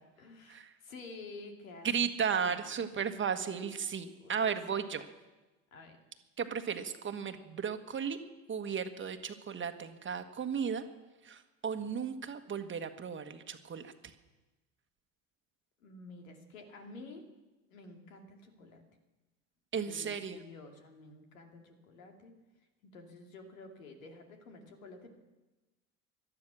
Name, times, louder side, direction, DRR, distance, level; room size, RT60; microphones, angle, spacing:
voice 1, 0.2-1.9 2.3-2.6 3.0-3.1 4.2-4.5 5.7-6.0 15.8-17.2 17.7-18.8 19.8-22.3 22.9-25.1, left 3 dB, 80° left, 4 dB, 2.5 m, -50 dB
voice 2, 1.8-5.0 6.4-8.2 8.5-10.8 11.2-13.9 19.7-20.4, right 7 dB, 30° right, 8 dB, 1.5 m, -35 dB
18.0 x 12.0 x 6.3 m, 1.1 s
hypercardioid pair, 75°, 39 cm